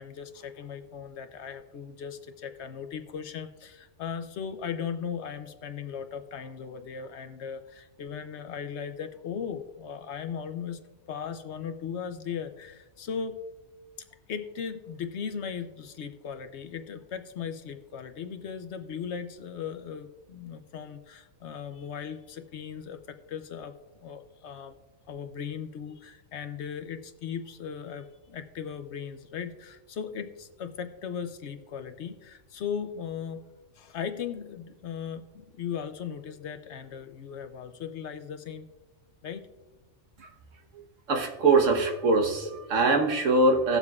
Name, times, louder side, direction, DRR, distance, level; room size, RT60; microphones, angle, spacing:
voice 1, 0.0-10.8 11.1-13.4 14.3-23.7 24.0-24.8 25.1-33.4 33.7-38.7 39.2-39.5, left 7 dB, 65° left, 9 dB, 0.9 m, -37 dB
voice 2, 41.1-43.8, right 3 dB, 70° right, 4 dB, 1.5 m, -23 dB
18.0 x 7.1 x 2.4 m, 1.1 s
omnidirectional pair, 1.4 m